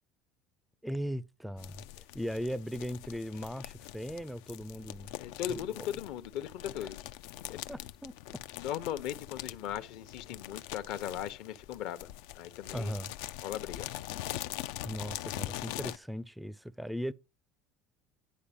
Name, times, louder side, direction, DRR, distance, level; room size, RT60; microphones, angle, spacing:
voice 1, 0.8-5.2 5.5-5.9 6.8-6.9 7.7-8.1 12.7-13.1 14.8-17.1, equal, ahead, 0.4 m, -38 dB
sound 1, 1.6-16.0, left 15 dB, 80° left, 0.6 m, -43 dB
voice 2, 5.2-7.0 7.5-7.6 8.6-12.1 12.3-12.9 13.4-13.9, left 10 dB, 65° left, 1.0 m, -38 dB
10.5 x 4.3 x 7.1 m
cardioid pair, 150°, 0 cm